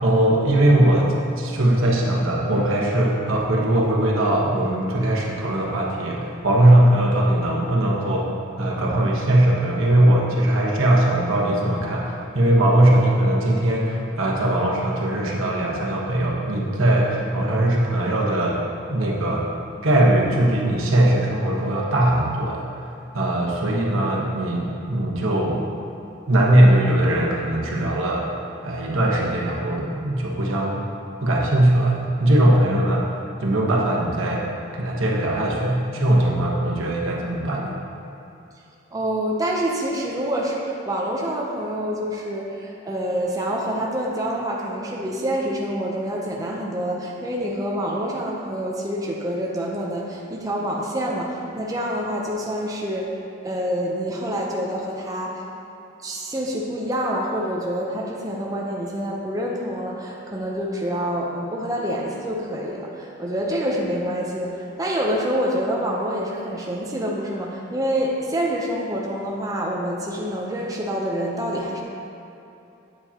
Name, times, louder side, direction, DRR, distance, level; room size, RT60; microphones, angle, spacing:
voice 1, 0.0-8.3 8.6-18.6 18.9-19.4 19.8-22.6 23.1-25.6 26.3-28.2 28.6-30.8 31.2-33.0 33.4-34.4 34.7-37.8, right 1 dB, 85° right, -2 dB, 1.1 m, -20 dB
voice 2, 38.9-53.2 53.4-55.4 56.0-71.8, equal, 15° right, -3 dB, 0.6 m, -27 dB
8.6 x 7.3 x 2.9 m, 2.8 s
head